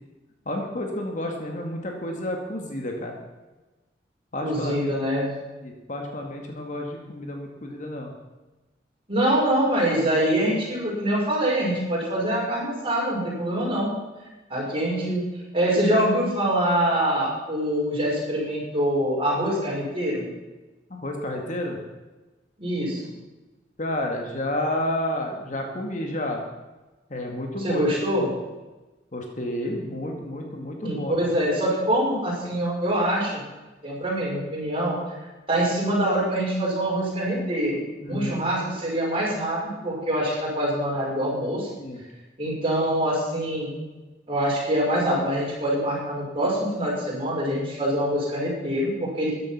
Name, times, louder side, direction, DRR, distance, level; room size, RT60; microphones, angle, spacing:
voice 1, 0.5-3.2 4.3-4.9 5.6-8.1 20.9-21.8 23.8-26.4 27.1-27.9 28.2-28.3 29.1-31.2 38.0-38.4 41.8-42.0, left 1 dB, 45° left, 2 dB, 2.0 m, -30 dB
voice 2, 4.4-5.3 9.1-13.9 14.5-15.2 15.5-20.2 22.6-23.1 27.6-28.3 30.8-33.4 33.8-35.0 35.5-37.8 38.1-41.7 42.4-43.7 44.3-49.4, right 1 dB, 30° right, -5 dB, 5.7 m, -24 dB
14.0 x 10.5 x 5.9 m, 1.1 s
head